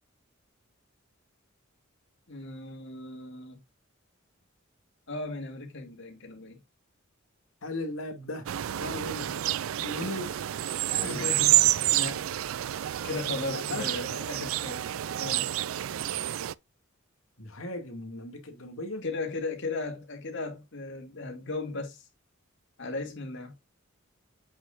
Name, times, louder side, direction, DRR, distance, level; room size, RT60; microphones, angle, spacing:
voice 1, 2.3-3.6 5.1-6.6 10.9-12.2 13.0-14.9 15.2-15.5 19.0-22.1 22.8-23.5, left 3 dB, 60° left, 2.5 m, -36 dB
voice 2, 7.6-9.4 9.8-10.4 10.9-11.3 13.5-13.9 17.4-19.1, left 2 dB, 75° left, 2.3 m, -37 dB
sound 1, 8.5-16.5, right 14 dB, 75° right, 0.4 m, -28 dB
7.9 x 6.4 x 2.5 m
head